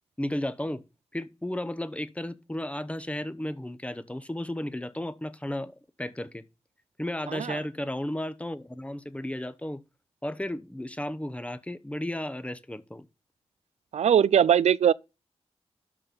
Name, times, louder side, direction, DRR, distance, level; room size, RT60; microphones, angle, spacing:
voice 1, 0.2-0.8 1.1-6.4 7.0-9.8 10.2-13.1, left 1 dB, 10° left, 0.9 m, -34 dB
voice 2, 7.3-7.6 13.9-14.9, right 9 dB, 90° right, 0.4 m, -21 dB
12.5 x 4.2 x 5.3 m
wide cardioid pair, 85°, 11 cm